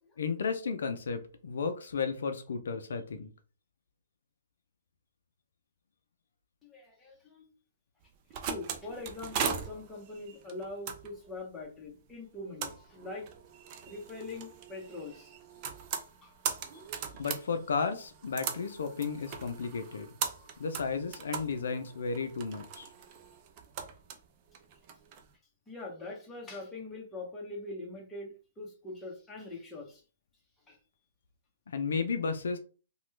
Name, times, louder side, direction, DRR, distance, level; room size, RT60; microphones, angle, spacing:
voice 1, 0.2-3.3 17.2-20.1 20.6-22.9 31.7-32.6, left 5 dB, 75° left, 8 dB, 0.4 m, -33 dB
voice 2, 6.6-7.5 8.4-13.3 13.9-15.3 16.2-16.3 25.7-30.0 30.7-30.8, left 2 dB, 10° left, -1 dB, 1.0 m, -43 dB
sound 1, 8.0-25.2, right 7 dB, 35° right, 0.5 m, -40 dB
2.9 x 2.3 x 3.2 m, 0.37 s
hypercardioid pair, 140°, 0 cm